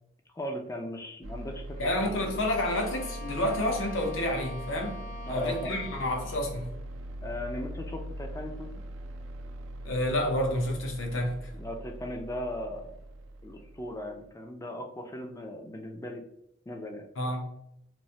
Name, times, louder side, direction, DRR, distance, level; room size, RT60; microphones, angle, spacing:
voice 1, 0.3-2.0 5.3-5.8 7.2-8.8 11.5-12.9 13.4-16.2 16.7-17.0, left 1 dB, 15° left, 0.3 m, -37 dB
sound 1, 1.2-14.3, right 1 dB, 80° right, 0.4 m, -41 dB
Bowed string instrument, 1.7-6.6, left 2 dB, 45° left, 0.8 m, -44 dB
voice 2, 1.8-5.0 5.3-6.7 9.8-11.5 17.2-17.5, left 1 dB, 80° left, 0.6 m, -29 dB
3.0 x 2.1 x 2.6 m
head